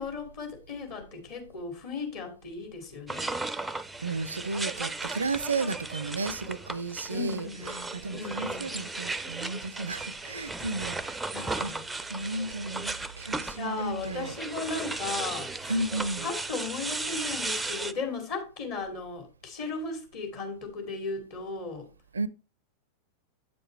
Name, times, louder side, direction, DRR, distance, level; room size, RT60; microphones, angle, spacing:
voice 1, 0.0-3.3 7.1-7.8 8.1-8.7 10.9-11.0 11.3-11.9 13.5-15.8 16.2-21.9, left 4 dB, 45° left, 2.6 m, -36 dB
sound 1, 3.1-17.9, right 3 dB, 5° right, 0.5 m, -36 dB
voice 2, 4.0-7.5 7.9-11.2 11.6-11.7 12.1-14.3 15.7-16.3 22.1-22.3, right 3 dB, 75° right, 0.5 m, -33 dB
8.9 x 6.9 x 3.1 m
figure-of-eight pair, 90°, 0 cm